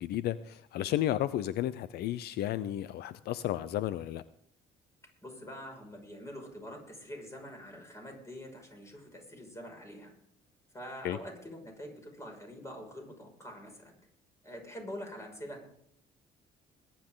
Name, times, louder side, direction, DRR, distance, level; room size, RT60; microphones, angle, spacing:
voice 1, 0.0-4.2 11.0-11.2, left 13 dB, 70° left, 15 dB, 0.5 m, -33 dB
voice 2, 5.2-10.1 10.7-14.0 14.4-15.6, equal, 15° left, 2 dB, 5.9 m, -45 dB
21.5 x 10.0 x 3.8 m, 0.71 s
cardioid pair, 110°, 17 cm